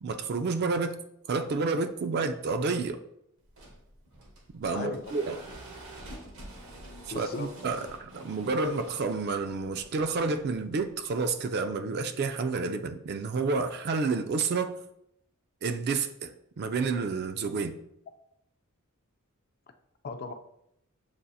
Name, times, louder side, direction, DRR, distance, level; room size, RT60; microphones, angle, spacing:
voice 1, 0.0-1.0 1.3-3.0 4.5-5.4 7.1-14.8 15.6-17.8, right 4 dB, 45° right, 0.3 m, -30 dB
sound 1, 3.4-11.3, right 1 dB, 70° right, 0.9 m, -48 dB
voice 2, 4.7-5.4 7.1-7.5 20.0-20.3, left 4 dB, 45° left, 0.4 m, -37 dB
7.4 x 2.7 x 2.3 m
head